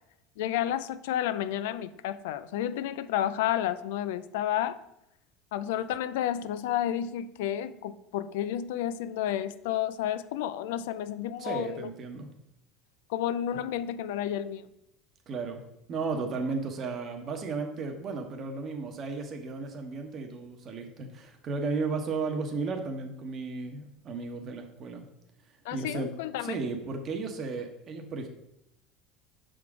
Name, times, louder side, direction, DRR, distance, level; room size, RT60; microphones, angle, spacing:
voice 1, 0.4-4.8 5.5-11.9 13.1-14.6 25.7-26.6, left 11 dB, 80° left, 14 dB, 0.3 m, -31 dB
voice 2, 11.4-12.3 15.3-15.6 15.9-25.0 25.7-26.1 26.4-28.3, right 4 dB, 45° right, 5 dB, 1.0 m, -34 dB
5.8 x 3.8 x 4.8 m, 0.83 s
supercardioid pair, 95°, 0 cm